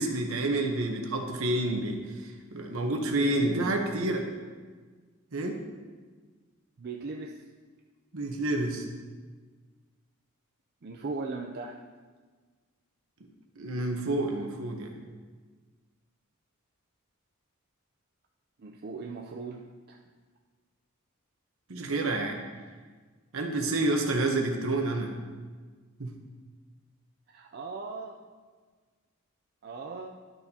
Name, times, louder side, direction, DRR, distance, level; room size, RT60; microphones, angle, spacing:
voice 1, 0.0-4.3 5.3-5.6 8.1-8.8 13.6-14.9 21.7-22.4 23.3-25.1 26.0-26.1, right 2 dB, 70° right, 3 dB, 1.1 m, -29 dB
voice 2, 3.2-3.7 6.8-7.3 10.8-11.8 18.6-20.0 27.3-28.2 29.6-30.1, right 3 dB, 45° right, 1 dB, 0.5 m, -38 dB
11.5 x 6.8 x 2.8 m, 1.4 s
head